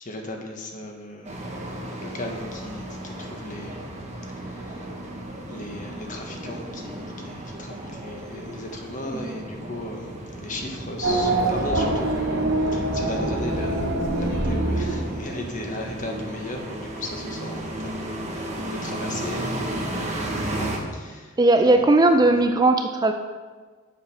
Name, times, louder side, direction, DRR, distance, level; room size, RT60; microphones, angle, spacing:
voice 1, 0.0-3.8 4.5-4.9 5.5-10.1 10.4-13.9 14.2-21.3 21.6-22.1, left 1 dB, 40° left, 2 dB, 1.3 m, -36 dB
sound 1, 1.2-20.8, right 1 dB, 35° right, 1.3 m, -35 dB
voice 2, 9.1-9.4 21.4-23.1, right 2 dB, 20° right, 6 dB, 0.4 m, -18 dB
Race car auto racing / Accelerating revving vroom, 11.0-15.7, right 2 dB, 75° right, 2.2 m, -24 dB
7.5 x 6.4 x 5.6 m, 1.5 s
head